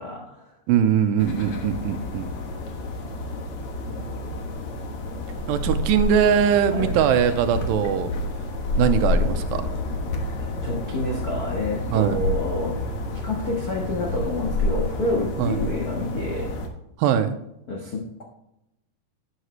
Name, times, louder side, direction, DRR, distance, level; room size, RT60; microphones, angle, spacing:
voice 1, 0.0-0.6 1.5-2.1 6.7-6.9 10.2-12.8 13.1-16.6 17.7-18.2, left 2 dB, 80° left, -1 dB, 0.8 m, -29 dB
voice 2, 0.7-2.3 5.5-8.1 8.8-9.6 11.9-12.2 15.4-15.6 17.0-17.3, right 8 dB, 85° right, 9 dB, 2.5 m, -21 dB
sound 1, 1.2-16.7, left 2 dB, 60° left, 1.5 m, -29 dB
11.5 x 8.9 x 3.2 m, 0.86 s
omnidirectional pair, 4.1 m